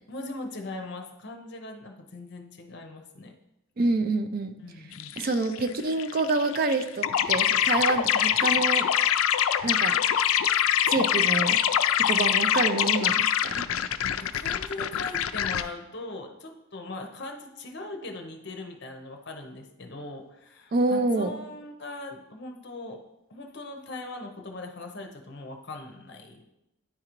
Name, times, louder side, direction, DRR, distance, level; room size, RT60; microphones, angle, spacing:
voice 1, 0.1-3.4 4.6-5.2 14.0-23.0 23.3-26.4, left 2 dB, 50° left, 4 dB, 0.7 m, -40 dB
voice 2, 3.8-4.6 5.2-8.9 9.6-10.0 10.8-11.6 12.1-13.7 20.7-21.3, right 3 dB, 40° right, 8 dB, 0.4 m, -27 dB
sound 1, 5.0-5.7 6.0-15.6, left 10 dB, 75° left, 0.3 m, -24 dB
9.7 x 3.8 x 3.0 m, 0.89 s
head